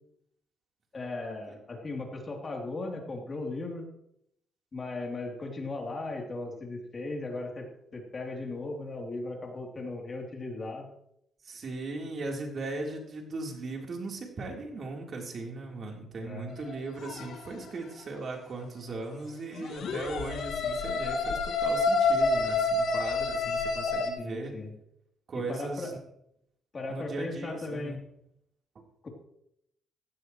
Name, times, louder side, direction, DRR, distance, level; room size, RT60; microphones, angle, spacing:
voice 1, 0.9-3.9 4.7-7.7 7.9-10.9 16.2-16.5 24.2-24.7 25.3-25.9 26.7-28.0, left 2 dB, 35° left, 1 dB, 3.3 m, -37 dB
voice 2, 11.4-24.5 25.3-26.0 26.9-28.0, right 3 dB, 50° right, 0 dB, 3.7 m, -38 dB
sound 1, 16.6-17.3 19.6-24.1, left 3 dB, 70° left, 2.0 m, -28 dB
16.5 x 16.0 x 3.2 m, 0.76 s
cardioid pair, 90°, 0 cm